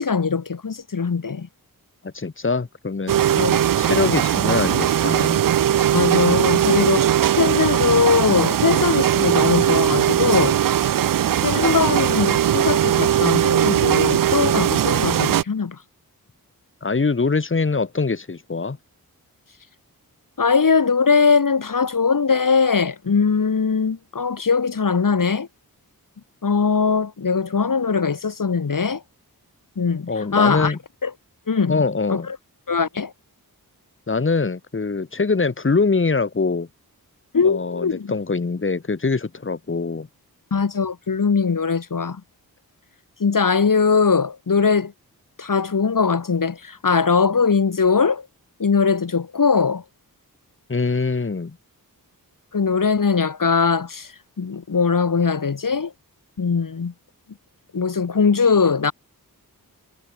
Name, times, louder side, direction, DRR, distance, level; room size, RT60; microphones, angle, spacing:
voice 1, 0.0-1.5 3.4-3.6 5.9-10.6 11.4-15.8 20.4-25.5 26.4-29.0 29.8-30.7 31.0-31.1 31.5-31.8 32.1-32.4 32.7-33.1 37.3-38.1 40.5-42.2 43.2-44.9 45.4-48.3 48.6-49.8 52.5-55.9 56.4-56.9 57.7-58.9, left 5 dB, 60° left, 3.4 m, -20 dB
voice 2, 2.0-3.2 3.8-5.5 16.8-18.8 30.1-30.8 31.7-32.3 34.1-36.7 37.4-40.1 50.7-51.6, left 4 dB, 35° left, 1.8 m, -23 dB
sound 1, 3.1-15.4, right 10 dB, 60° right, 0.5 m, -19 dB
wide cardioid pair, 95°, 37 cm